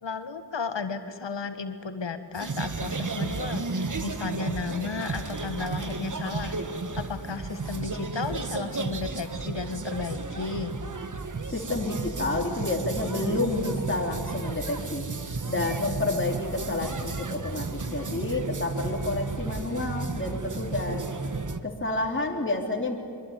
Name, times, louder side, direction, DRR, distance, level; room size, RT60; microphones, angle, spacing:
voice 1, 0.0-10.7, left 4 dB, 90° left, 9 dB, 1.7 m, -34 dB
sound 1, 2.3-21.6, right 3 dB, 45° right, 1.4 m, -33 dB
voice 2, 11.5-15.1 15.5-21.0 21.6-23.0, left 2 dB, 30° left, 1 dB, 3.3 m, -29 dB
24.0 x 23.5 x 9.6 m, 2.4 s
wide cardioid pair, 90°, 42 cm